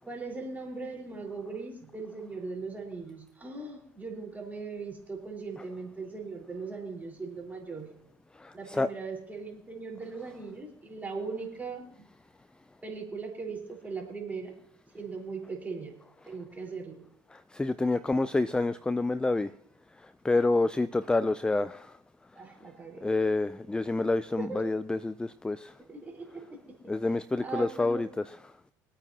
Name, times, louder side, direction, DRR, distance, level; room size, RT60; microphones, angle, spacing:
voice 1, 0.0-7.9 8.5-12.1 12.8-14.6 14.9-16.0 16.2-17.0 22.3-23.0 24.4-24.6 25.8-26.8 27.4-28.0, right 4 dB, 20° right, -1 dB, 4.4 m, -39 dB
voice 2, 8.4-8.9 17.3-19.5 20.2-21.9 23.0-25.7 26.9-28.2, left 2 dB, 10° left, 15 dB, 0.4 m, -28 dB
25.5 x 8.9 x 2.9 m, 0.69 s
supercardioid pair, 90°, 8 cm